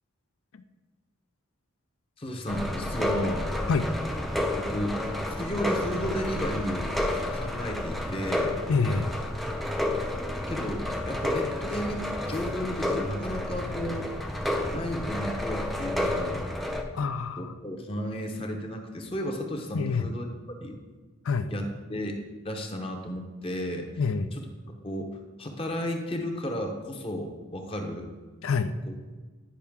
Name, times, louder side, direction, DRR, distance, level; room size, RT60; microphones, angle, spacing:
voice 1, 2.2-3.5 4.6-8.6 10.5-14.1 14.7-16.5 17.4-20.8 21.5-22.2 22.4-23.9 24.8-28.1 28.9-29.0, equal, 25° left, 3 dB, 0.7 m, -33 dB
sound 1, 2.5-16.8, left 1 dB, ahead, 0.4 m, -30 dB
voice 2, 8.7-9.2 16.9-17.5 19.7-20.1 21.2-21.5 24.0-24.3 28.4-28.7, left 4 dB, 70° left, 11 dB, 0.4 m, -27 dB
10.0 x 5.5 x 3.6 m, 1.3 s
head